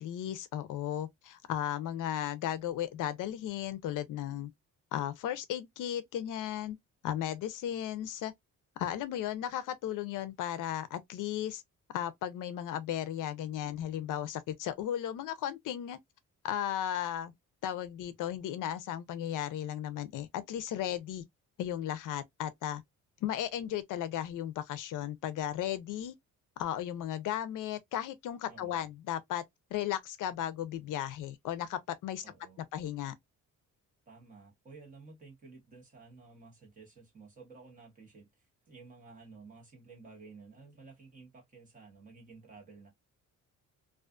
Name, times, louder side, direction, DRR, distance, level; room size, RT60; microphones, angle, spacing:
voice 1, 0.0-4.5 4.9-6.8 7.0-8.3 8.8-11.6 11.9-16.0 16.4-17.3 17.6-21.2 21.6-22.8 23.2-26.1 26.6-29.4 29.7-32.2 32.7-33.1, left 11 dB, 70° left, 0.5 m, -35 dB
voice 2, 28.5-28.9 32.2-32.6 34.1-42.9, right 4 dB, 25° right, 1.0 m, -53 dB
2.4 x 2.3 x 2.3 m
cardioid pair, 165°, 32 cm